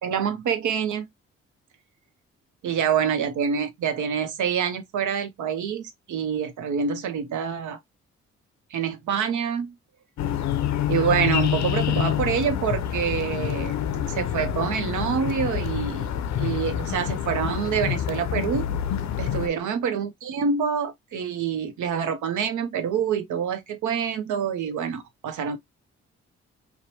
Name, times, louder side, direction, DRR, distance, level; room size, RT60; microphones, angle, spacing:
voice 1, 0.0-1.0 2.6-7.8 8.7-9.7 10.9-13.8 14.1-16.1 16.4-18.7 19.2-25.6, right 7 dB, 65° right, 0.7 m, -26 dB
sound 1, 10.2-19.5, left 10 dB, 60° left, 0.5 m, -27 dB
2.8 x 2.1 x 2.7 m
hypercardioid pair, 45°, 32 cm